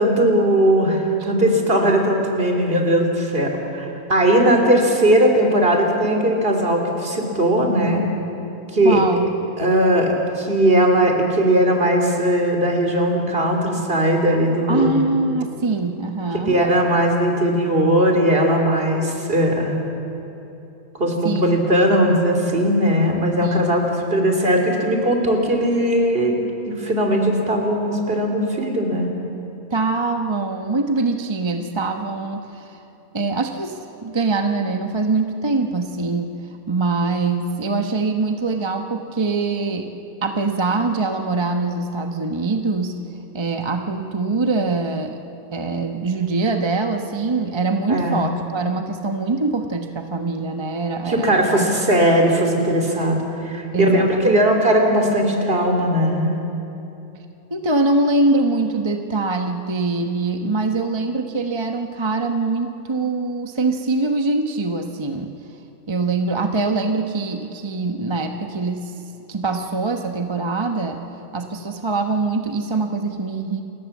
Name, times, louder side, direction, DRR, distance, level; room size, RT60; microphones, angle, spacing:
voice 1, 0.0-8.0 8.7-9.0 9.6-15.0 16.5-19.7 21.0-26.4 26.7-29.1 47.9-48.2 51.1-56.3, right 1 dB, 40° right, 2 dB, 3.5 m, -18 dB
voice 2, 8.8-9.3 14.7-16.6 21.2-21.4 23.4-23.8 29.7-32.8 33.1-36.3 36.7-39.9 40.2-42.9 43.3-45.2 45.5-51.7 53.7-54.4 57.5-65.3 65.9-68.9 69.3-71.0 71.3-73.6, right 3 dB, 20° right, 5 dB, 1.0 m, -23 dB
28.5 x 21.5 x 7.3 m, 2.9 s
omnidirectional pair, 1.5 m